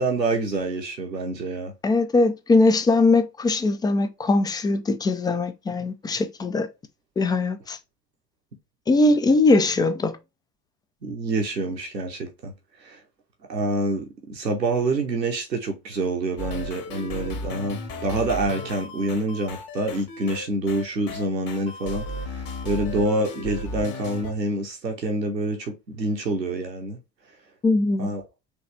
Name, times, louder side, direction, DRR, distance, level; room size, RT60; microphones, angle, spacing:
voice 1, 0.0-1.7 11.0-12.5 12.8-13.0 13.5-27.0 28.0-28.2, right 2 dB, 85° right, 1.1 m, -27 dB
voice 2, 1.8-6.7 7.2-7.8 8.9-10.2 27.6-28.1, left 3 dB, 10° left, 0.3 m, -21 dB
sound 1, 16.4-24.3, left 1 dB, 45° left, 1.7 m, -35 dB
5.1 x 3.2 x 3.2 m
figure-of-eight pair, 65°, 49 cm